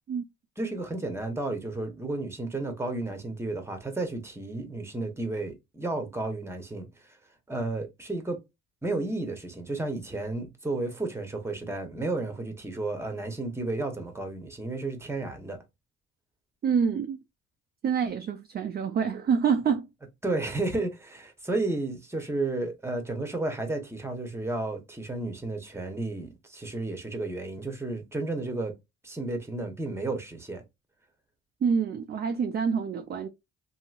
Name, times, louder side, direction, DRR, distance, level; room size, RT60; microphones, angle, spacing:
voice 1, 0.6-7.2 7.5-8.4 8.8-15.6 20.2-28.7 29.0-30.6, right 2 dB, 10° right, 0.9 m, -32 dB
voice 2, 16.6-17.2 17.8-19.9 31.6-33.3, right 6 dB, 35° right, 0.4 m, -26 dB
2.9 x 2.7 x 2.4 m
cardioid pair, 90°, 30 cm